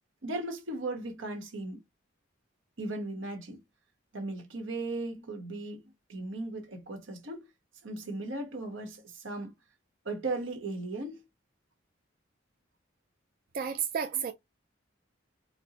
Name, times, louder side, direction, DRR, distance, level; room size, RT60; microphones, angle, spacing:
voice 1, 0.2-1.8 2.8-3.6 4.1-7.5 7.8-9.5 10.0-11.2 14.1-14.2, right 2 dB, 90° right, 1.1 m, -37 dB
voice 2, 13.5-14.3, right 7 dB, 45° right, 0.3 m, -31 dB
4.3 x 2.0 x 2.9 m
head